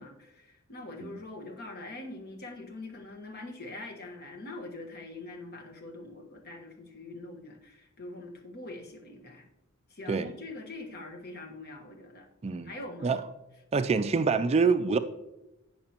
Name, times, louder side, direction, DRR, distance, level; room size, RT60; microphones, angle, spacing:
voice 1, 0.0-9.5 9.9-12.3 12.6-13.2, left 2 dB, 45° left, 1.3 m, -43 dB
voice 2, 13.7-15.0, right 4 dB, 30° right, 0.3 m, -26 dB
17.5 x 6.0 x 2.9 m
head